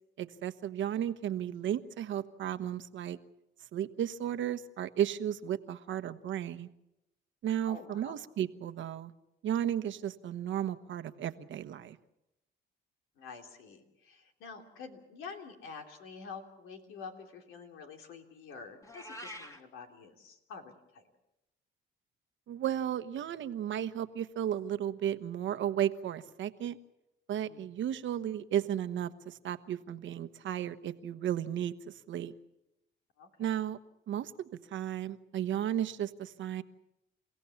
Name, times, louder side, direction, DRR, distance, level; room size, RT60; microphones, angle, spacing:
voice 1, 0.2-3.2 3.7-6.7 7.4-9.1 9.4-12.0 22.5-26.8 27.3-32.3 33.4-33.8 34.1-36.6, right 10 dB, 75° right, 11 dB, 1.2 m, -34 dB
voice 2, 7.6-8.2 13.2-21.0 27.4-27.6 33.2-33.5, left 5 dB, 90° left, 4 dB, 3.3 m, -48 dB
Meow, 18.8-19.6, left 1 dB, 15° left, 2.5 m, -45 dB
30.0 x 16.5 x 7.2 m, 0.89 s
cardioid pair, 90°, 20 cm